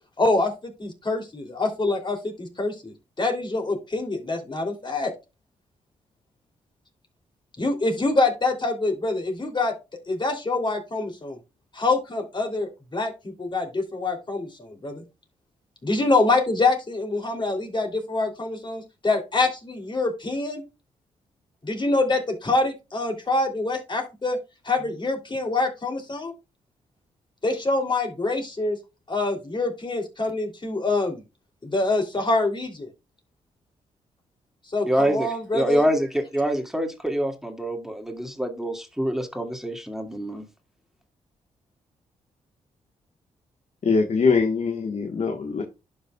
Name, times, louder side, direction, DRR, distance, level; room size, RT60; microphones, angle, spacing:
voice 1, 0.2-5.1 7.6-9.7 10.1-11.4 11.7-15.0 15.8-20.6 21.6-24.4 24.6-26.3 27.4-28.8 29.1-31.2 31.6-32.9 34.7-35.8, left 2 dB, 35° left, 3.1 m, -25 dB
voice 2, 34.9-35.3 35.5-40.4, right 1 dB, 5° right, 2.2 m, -25 dB
voice 3, 43.8-45.6, left 4 dB, 50° left, 1.4 m, -22 dB
11.5 x 5.5 x 2.3 m
supercardioid pair, 50°, 14 cm